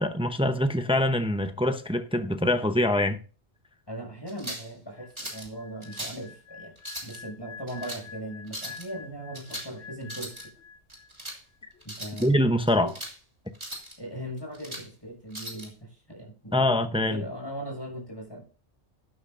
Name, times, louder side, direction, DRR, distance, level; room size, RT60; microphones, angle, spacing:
voice 1, 0.0-3.2 12.2-12.9 16.5-17.2, left 1 dB, 5° right, 0.6 m, -24 dB
voice 2, 3.9-6.7 7.0-10.3 11.8-12.4 12.8-12.9 14.0-16.7 17.0-18.4, right 1 dB, 20° left, 6.8 m, -39 dB
sound 1, 4.3-4.7 5.2-5.5 5.8-6.2 6.8-7.2 7.7-8.0 8.5-8.8 9.3-9.7 10.0-10.4 10.9-11.4 11.8-12.3 12.7-13.2 13.5-13.9 14.4-14.9 15.3-15.7, right 1 dB, 25° right, 3.2 m, -39 dB
sound 2, 4.9-11.3 11.5-11.8, left 5 dB, 75° left, 1.2 m, -48 dB
12.0 x 11.5 x 2.6 m
omnidirectional pair, 1.2 m